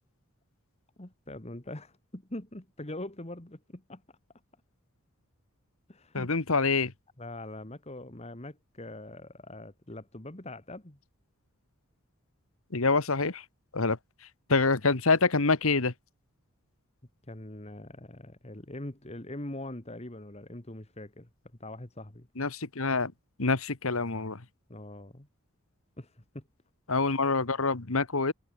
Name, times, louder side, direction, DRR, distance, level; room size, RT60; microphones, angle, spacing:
voice 1, 1.0-4.0 5.9-6.3 7.2-11.0 17.3-21.3 21.6-22.3 24.7-25.3 26.0-26.5, left 1 dB, 30° left, 1.9 m, -42 dB
voice 2, 6.1-6.9 12.7-13.4 13.7-14.0 14.5-15.9 22.4-23.1 23.4-24.4 26.9-28.3, left 3 dB, 70° left, 1.5 m, -26 dB
head